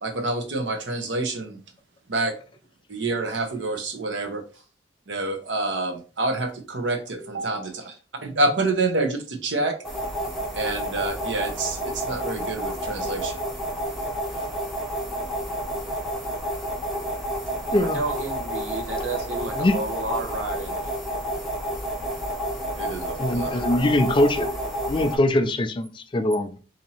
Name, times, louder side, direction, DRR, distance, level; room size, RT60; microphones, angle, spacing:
voice 1, 0.0-1.6 2.1-2.3 2.9-4.4 5.1-7.7 8.2-9.7 10.5-13.4 22.8-23.8, right 2 dB, 65° right, 0.8 m, -27 dB
voice 2, 7.6-8.0 17.8-20.8, right 2 dB, 85° right, 1.1 m, -32 dB
sound 1, 9.8-25.2, equal, ahead, 0.7 m, -30 dB
voice 3, 23.2-24.5 24.9-26.6, left 1 dB, 25° left, 0.3 m, -22 dB
2.8 x 2.6 x 4.2 m
head